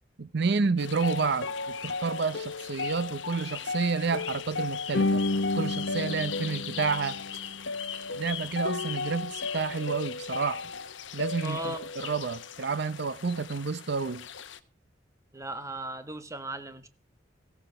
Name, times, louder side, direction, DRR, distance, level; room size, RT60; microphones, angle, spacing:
voice 1, 0.2-5.2 5.5-7.2 8.1-10.7 11.1-14.3, right 4 dB, 60° right, 0.7 m, -30 dB
sound 1, 0.8-14.6, left 3 dB, 80° left, 1.0 m, -33 dB
voice 2, 11.4-11.9 15.3-16.9, right 2 dB, 15° right, 1.2 m, -37 dB
16.0 x 7.8 x 6.8 m
head